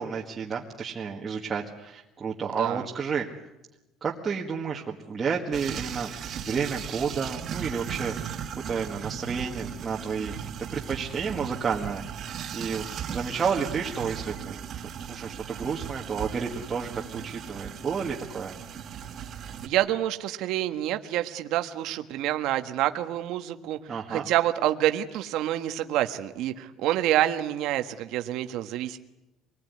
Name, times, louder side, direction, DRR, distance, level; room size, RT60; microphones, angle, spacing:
voice 1, 0.0-3.3 4.0-6.1 6.4-8.4 8.7-18.6 23.9-24.3, right 6 dB, 20° right, -2 dB, 1.7 m, -31 dB
sound 1, 5.5-19.7, right 8 dB, 40° right, 2.1 m, -37 dB
voice 2, 19.6-29.0, right 13 dB, 65° right, 7 dB, 1.4 m, -27 dB
26.5 x 20.5 x 9.6 m, 0.98 s
cardioid pair, 170°, 0 cm